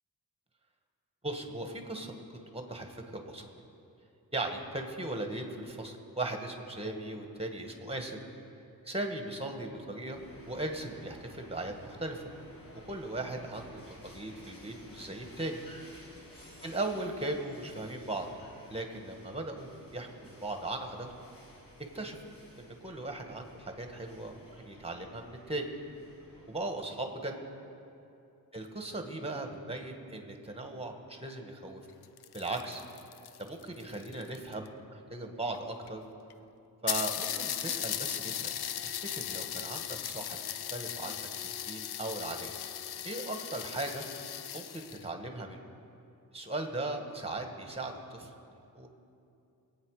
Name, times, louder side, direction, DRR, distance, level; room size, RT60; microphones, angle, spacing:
voice 1, 1.2-2.2 2.5-3.5 4.3-8.2 8.8-10.2 10.5-12.2 12.9-15.6 16.6-18.3 18.7-21.3 21.9-22.2 22.6-25.7 26.5-27.4 28.5-31.8 32.3-32.8 33.4-36.0 36.8-38.5 38.8-40.4 40.7-41.3 41.7-42.5 43.0-44.0 44.5-45.6 46.3-48.3 48.7-48.9, right 2 dB, 15° right, 4 dB, 1.5 m, -38 dB
sound 1, 10.1-26.6, left 1 dB, 65° left, 3.3 m, -54 dB
sound 2, 31.9-34.7 35.5-35.6 35.9-36.0 36.3-36.4 36.9-45.1, left 10 dB, 85° left, 0.6 m, -37 dB
23.0 x 8.8 x 4.9 m, 2.7 s
wide cardioid pair, 105°, 38 cm